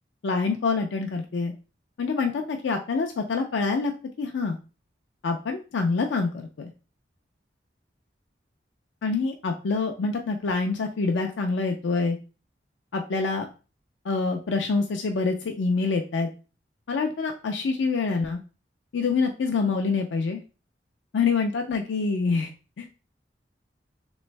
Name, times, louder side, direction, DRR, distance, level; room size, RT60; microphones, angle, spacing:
voice 1, 0.2-1.5 2.0-3.9 4.2-4.6 5.2-6.7 9.0-12.2 12.9-13.5 14.0-16.3 16.9-18.4 18.9-20.4 21.1-22.5 22.8-22.9, left 4 dB, 90° left, 4 dB, 0.4 m, -26 dB
3.4 x 3.1 x 3.2 m, 0.34 s
head